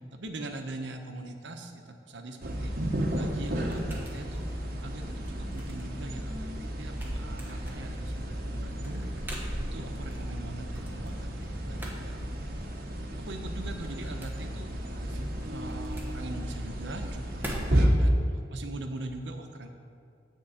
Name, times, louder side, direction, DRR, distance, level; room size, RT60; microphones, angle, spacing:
voice 1, 0.1-1.8 2.1-2.7 3.1-4.4 4.8-9.1 9.6-12.3 13.3-18.2 18.5-19.7, right 2 dB, 75° right, 5 dB, 0.9 m, -41 dB
sound 1, 2.4-17.9, right 1 dB, 55° right, 1.1 m, -33 dB
sound 2, 2.8-18.1, right 1 dB, 10° right, 1.2 m, -46 dB
9.5 x 4.6 x 7.3 m, 2.3 s
head